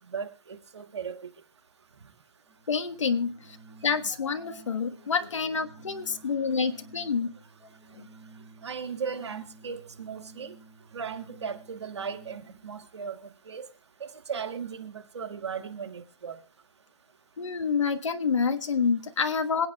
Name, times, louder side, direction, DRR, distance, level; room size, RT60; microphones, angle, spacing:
voice 1, 0.1-1.3 8.6-10.5 10.9-13.2 13.5-13.6 14.3-16.4, right 6 dB, 65° right, 8 dB, 2.0 m, -36 dB
Organ, 2.4-12.7, right 3 dB, 15° right, 2.7 m, -53 dB
voice 2, 2.7-3.6 3.8-7.3 7.9-8.0 17.4-19.7, left 5 dB, 90° left, 7 dB, 1.4 m, -28 dB
26.5 x 8.8 x 2.3 m, 0.37 s
hypercardioid pair, 175°, 15 cm